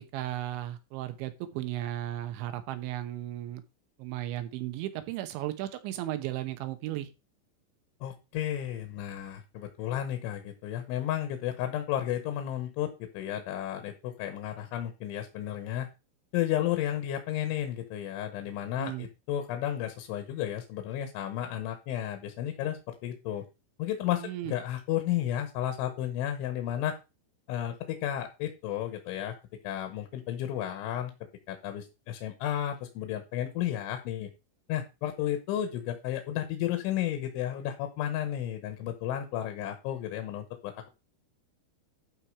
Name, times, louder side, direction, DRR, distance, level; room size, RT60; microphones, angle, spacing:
voice 1, 0.1-3.6 4.0-7.1 18.8-19.1 24.2-24.5, right 14 dB, 80° right, 10 dB, 3.2 m, -35 dB
voice 2, 8.0-15.9 16.3-23.4 23.8-27.0 27.5-29.4 29.6-31.1 31.5-34.3 34.7-40.9, left 11 dB, 85° left, 6 dB, 3.6 m, -33 dB
12.0 x 4.7 x 4.8 m, 0.28 s
omnidirectional pair, 5.4 m